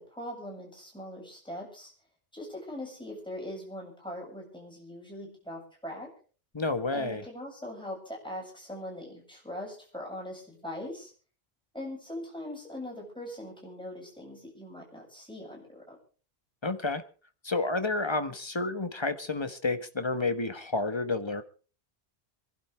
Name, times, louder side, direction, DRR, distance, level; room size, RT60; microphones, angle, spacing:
voice 1, 0.0-1.9 2.3-6.1 6.9-11.1 11.7-16.0, left 1 dB, 5° left, 7.5 m, -41 dB
voice 2, 6.5-7.2 16.6-17.0 17.4-21.4, left 3 dB, 25° left, 1.3 m, -30 dB
27.0 x 11.5 x 3.5 m
omnidirectional pair, 1.1 m